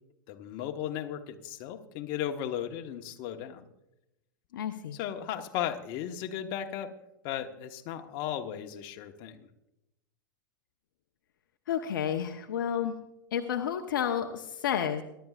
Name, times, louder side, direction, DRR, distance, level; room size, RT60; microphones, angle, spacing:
voice 1, 0.3-3.7 4.9-6.9 7.2-9.5, left 10 dB, 50° left, 5 dB, 1.2 m, -36 dB
voice 2, 4.5-5.0 11.7-12.9 13.3-15.0, left 9 dB, 70° left, 5 dB, 0.9 m, -31 dB
23.0 x 11.5 x 2.4 m, 0.88 s
hypercardioid pair, 100°, 11 cm